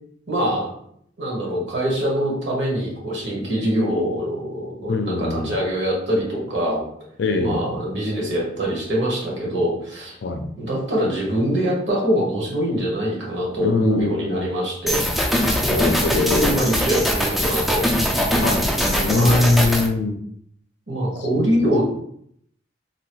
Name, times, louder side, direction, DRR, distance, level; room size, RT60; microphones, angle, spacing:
voice 1, 0.3-0.7 1.2-6.8 7.4-10.2 10.6-15.0 16.1-17.9 19.1-19.5 20.9-21.8, equal, 65° right, -3 dB, 1.3 m, -23 dB
voice 2, 4.9-5.5 7.2-7.7 10.2-10.5 13.6-14.5 15.6-16.5 18.4-20.2 21.2-21.5, left 3 dB, 65° left, 5 dB, 0.4 m, -22 dB
sound 1, 14.9-19.9, equal, ahead, 0.4 m, -21 dB
3.0 x 2.5 x 3.0 m, 0.68 s
head